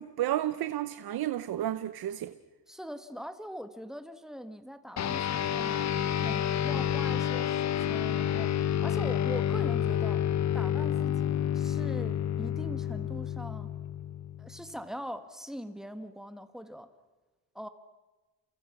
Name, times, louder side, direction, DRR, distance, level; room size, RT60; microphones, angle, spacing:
voice 1, 0.0-2.4, right 12 dB, 80° right, 0.9 m, -32 dB
voice 2, 2.7-10.2 10.5-13.7 14.4-16.9 17.5-17.7, equal, ahead, 1.5 m, -42 dB
sound 1, 5.0-14.7, left 10 dB, 50° left, 0.8 m, -29 dB
29.5 x 29.0 x 6.1 m
wide cardioid pair, 140°, 36 cm